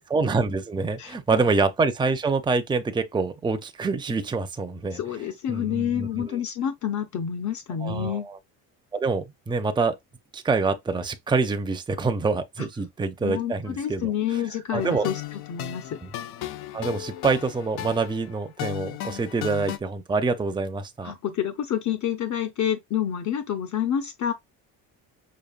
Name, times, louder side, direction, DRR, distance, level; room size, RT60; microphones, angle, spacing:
voice 1, 0.1-5.0 5.5-6.4 7.8-8.4 8.9-10.0 10.3-14.1 14.7-15.1 16.0-16.1 16.7-21.1, right 4 dB, 10° right, 0.5 m, -26 dB
voice 2, 1.0-1.4 4.9-8.3 12.6-12.7 13.2-15.9 21.0-24.3, left 9 dB, 50° left, 0.7 m, -28 dB
sound 1, 14.8-19.8, left 13 dB, 85° left, 0.6 m, -35 dB
5.2 x 2.5 x 2.4 m
cardioid pair, 100°, 38 cm